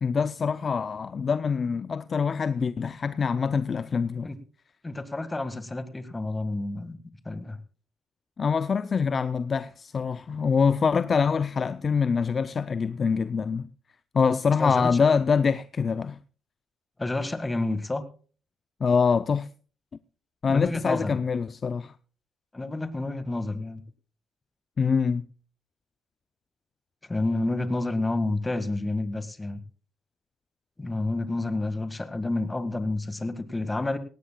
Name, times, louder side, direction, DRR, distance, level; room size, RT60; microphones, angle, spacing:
voice 1, 0.0-4.3 8.4-13.7 14.1-16.2 18.8-19.5 20.4-21.9 24.8-25.3, left 5 dB, 40° left, 0.5 m, -25 dB
voice 2, 4.8-7.0 7.2-7.6 14.6-14.9 17.0-18.1 20.5-21.2 22.5-23.8 27.1-29.6 30.8-34.0, left 2 dB, 20° left, 1.8 m, -29 dB
18.0 x 17.0 x 2.3 m
cardioid pair, 90°, 0 cm